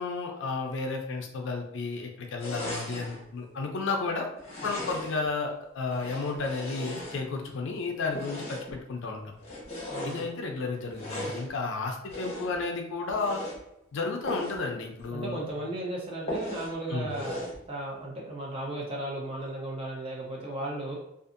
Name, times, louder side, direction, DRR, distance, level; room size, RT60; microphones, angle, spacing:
voice 1, 0.0-4.3 4.6-9.3 10.0-13.4 13.9-15.4 16.9-17.1, left 3 dB, 65° left, 3 dB, 0.4 m, -32 dB
sound 1, 2.4-3.2 4.4-5.3 5.9-7.5 8.1-8.8 9.4-10.3 10.9-11.5 12.1-12.6 13.1-13.6 14.2-14.6 15.0-15.1 15.5-15.6 16.3-16.8 17.1-17.6, left 1 dB, 30° left, 0.8 m, -37 dB
voice 2, 9.9-10.3 15.1-17.4 17.7-20.9, right 1 dB, 30° right, -3 dB, 0.5 m, -35 dB
2.6 x 2.4 x 2.5 m, 0.82 s
head